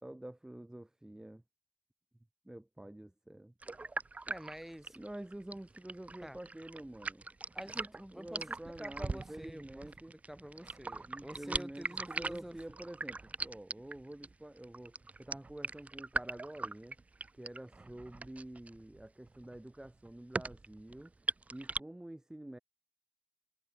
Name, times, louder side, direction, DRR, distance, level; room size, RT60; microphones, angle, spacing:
voice 1, 0.0-1.4 2.4-3.5 4.9-7.2 8.1-10.1 11.1-17.0 17.3-21.1 21.5-22.6, right 1 dB, 25° right, 2.5 m, -48 dB
sound 1, 3.6-21.8, right 3 dB, 70° right, 0.8 m, -41 dB
voice 2, 4.3-5.0 6.2-6.4 7.5-12.8 17.8-17.9, equal, 10° right, 5.1 m, -48 dB
wide cardioid pair, 45°, 3 cm